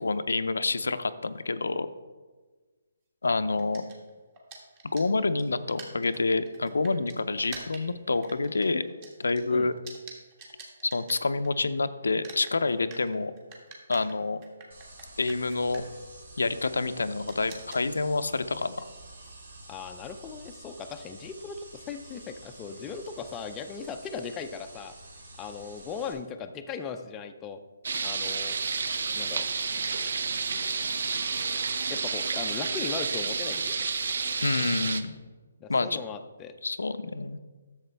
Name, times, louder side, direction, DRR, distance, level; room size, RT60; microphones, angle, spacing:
voice 1, 0.0-1.9 3.2-3.8 4.9-8.8 9.2-9.7 10.8-13.3 13.9-14.4 15.2-15.9 16.4-18.9 34.4-35.1 35.7-36.0 36.6-37.4, left 3 dB, 90° left, 11 dB, 0.5 m, -28 dB
sound 1, 3.6-11.8 12.0-20.3, right 3 dB, 30° right, 1.6 m, -49 dB
sound 2, 14.7-26.1, right 2 dB, 80° right, 3.2 m, -49 dB
voice 2, 19.7-25.0 25.4-27.6 28.0-28.6 29.2-29.5 31.9-33.9 34.6-34.7 35.6-36.5, left 6 dB, 15° left, 6 dB, 0.4 m, -38 dB
sound 3, 27.8-35.0, right 5 dB, 65° right, 0.6 m, -30 dB
10.5 x 7.2 x 3.4 m, 1.3 s
hypercardioid pair, 160°, 0 cm